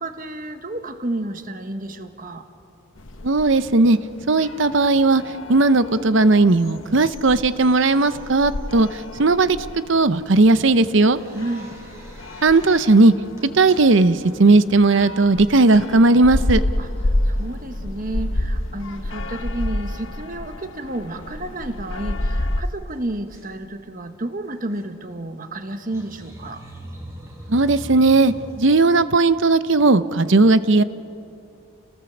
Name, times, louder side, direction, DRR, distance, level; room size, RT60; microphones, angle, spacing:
voice 1, 0.0-2.4 11.3-11.7 16.8-26.6, right 1 dB, 40° right, 8 dB, 1.3 m, -31 dB
sound 1, 3.0-22.6, left 1 dB, 70° left, 1.0 m, -30 dB
voice 2, 3.2-4.0 4.3-5.2 5.5-9.6 9.9-11.2 12.4-13.1 13.5-16.6 27.5-30.8, right 3 dB, 65° right, 13 dB, 0.7 m, -16 dB
sound 2, 10.6-12.9 13.2-15.0 15.5-15.9 16.4-16.5 16.8-17.4 19.6-19.8 21.6-21.7 21.9-22.0 22.2-22.3 22.6-23.5 24.6-24.8 25.7-29.1, equal, 15° right, 3.6 m, -42 dB
29.5 x 19.0 x 7.2 m, 2.5 s
head